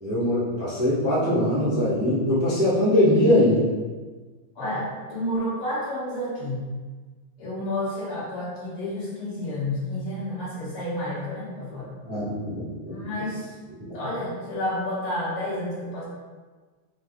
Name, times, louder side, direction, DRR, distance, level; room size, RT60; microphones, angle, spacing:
voice 1, 0.0-3.6 12.0-12.9, left 1 dB, 10° right, -9 dB, 0.8 m, -22 dB
voice 2, 4.6-6.6 7.4-12.0 12.9-13.5 13.9-16.0, left 1 dB, 85° left, -9 dB, 2.6 m, -30 dB
5.7 x 3.8 x 2.3 m, 1.4 s
omnidirectional pair, 2.4 m